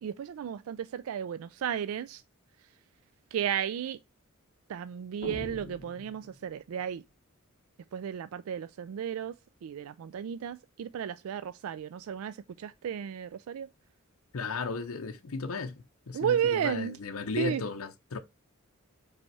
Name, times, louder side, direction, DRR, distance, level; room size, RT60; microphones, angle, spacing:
voice 1, 0.0-2.2 3.3-4.0 4.7-7.0 7.9-9.3 9.6-13.7 16.1-17.0 17.4-17.6, right 8 dB, 75° right, 0.3 m, -33 dB
sound 1, 5.2-6.8, left 2 dB, 50° left, 1.0 m, -44 dB
voice 2, 14.3-15.7 16.1-18.2, left 4 dB, 75° left, 0.7 m, -35 dB
5.3 x 4.2 x 4.6 m
head